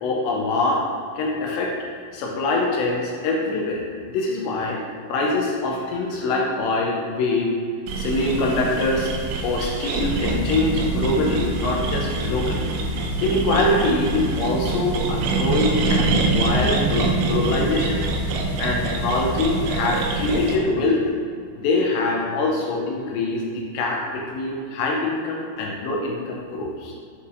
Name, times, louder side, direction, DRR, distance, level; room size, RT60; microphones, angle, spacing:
voice 1, 0.0-0.8 1.2-1.7 2.1-4.8 5.1-7.5 8.0-9.1 9.4-18.1 18.6-21.0 21.6-26.9, left 2 dB, 80° left, -1 dB, 2.8 m, -24 dB
sound 1, 7.9-20.6, right 3 dB, 90° right, 3.2 m, -24 dB
7.9 x 5.6 x 2.7 m, 2.2 s
omnidirectional pair, 5.5 m